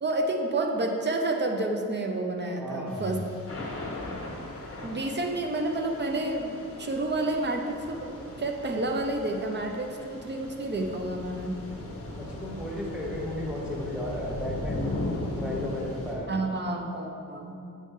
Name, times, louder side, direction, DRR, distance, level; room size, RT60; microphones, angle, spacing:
voice 1, 0.0-3.4 4.8-8.1 8.4-11.5 16.3-17.6, right 2 dB, 35° right, 3 dB, 0.5 m, -29 dB
voice 2, 2.6-3.2 12.2-14.8 15.4-16.3, equal, 5° right, -3 dB, 0.9 m, -34 dB
Thunder / Rain, 2.9-16.2, left 1 dB, 45° left, 1.2 m, -38 dB
7.4 x 5.5 x 3.6 m, 2.6 s
wide cardioid pair, 170°, 33 cm